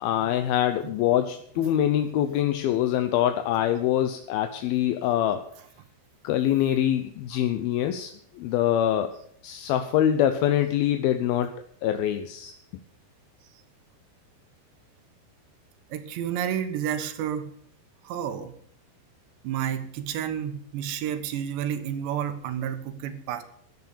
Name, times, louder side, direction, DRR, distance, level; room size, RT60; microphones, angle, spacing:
voice 1, 0.0-5.4 6.2-9.1 9.4-11.5 11.8-12.5, left 11 dB, 75° left, 8 dB, 2.4 m, -24 dB
voice 2, 15.9-17.5 18.0-18.5 19.4-23.4, right 9 dB, 80° right, 8 dB, 3.4 m, -30 dB
13.5 x 10.5 x 6.9 m, 0.64 s
omnidirectional pair, 5.0 m